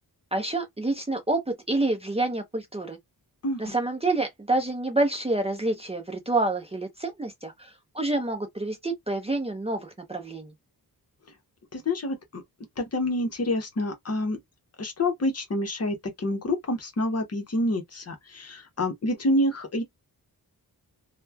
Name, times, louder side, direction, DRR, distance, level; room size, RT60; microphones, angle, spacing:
voice 1, 0.3-3.0 3.6-7.7 7.9-10.5, right 2 dB, 15° right, 0.5 m, -28 dB
voice 2, 3.4-3.7 11.7-12.4 12.8-14.4 14.8-19.8, left 1 dB, 40° left, 0.7 m, -27 dB
2.9 x 2.1 x 2.2 m
wide cardioid pair, 125°, 39 cm